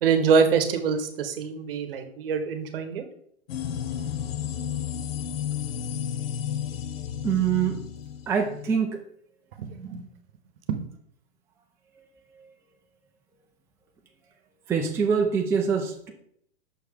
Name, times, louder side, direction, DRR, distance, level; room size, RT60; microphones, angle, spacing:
voice 1, 0.0-3.0 9.6-10.0 10.7-10.8, right 6 dB, 60° right, 7 dB, 1.0 m, -24 dB
sound 1, 3.5-8.7, left 9 dB, 60° left, 0.7 m, -32 dB
voice 2, 7.2-7.7 8.3-9.0 14.7-16.1, right 6 dB, 10° right, 1 dB, 0.5 m, -24 dB
6.4 x 4.6 x 3.4 m, 0.69 s
hypercardioid pair, 120°, 33 cm